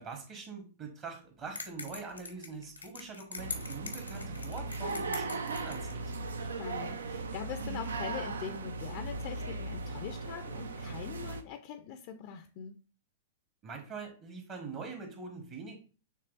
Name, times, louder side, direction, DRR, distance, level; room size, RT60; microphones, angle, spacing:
voice 1, 0.0-6.1 13.6-15.8, right 4 dB, 35° right, 3 dB, 1.2 m, -43 dB
sound 1, 1.6-6.0, left 4 dB, 85° left, 0.7 m, -43 dB
sound 2, 3.4-11.4, right 3 dB, 75° right, 0.5 m, -38 dB
voice 2, 6.4-12.8, left 8 dB, 45° left, 7 dB, 0.4 m, -42 dB
6.6 x 3.0 x 2.5 m, 0.37 s
figure-of-eight pair, 100°, 0 cm